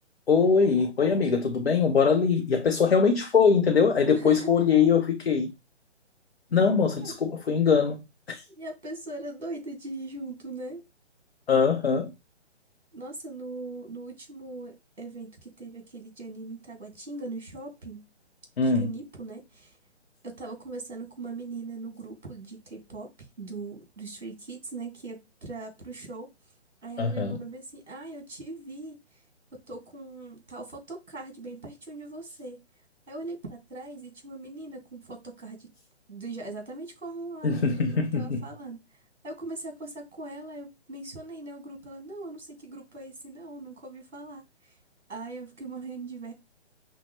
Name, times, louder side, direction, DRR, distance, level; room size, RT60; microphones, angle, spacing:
voice 1, 0.3-5.5 6.5-8.4 11.5-12.1 18.6-18.9 27.0-27.4 37.4-38.4, left 5 dB, 60° left, 1.0 m, -22 dB
voice 2, 4.1-4.5 7.0-7.1 8.6-10.8 12.9-18.1 18.6-19.8 20.2-26.3 26.8-29.2 29.5-32.6 33.1-35.7 36.1-38.8 39.2-44.8 45.1-46.3, right 2 dB, 85° right, 2.5 m, -40 dB
5.8 x 2.9 x 3.1 m
figure-of-eight pair, 135°, 34 cm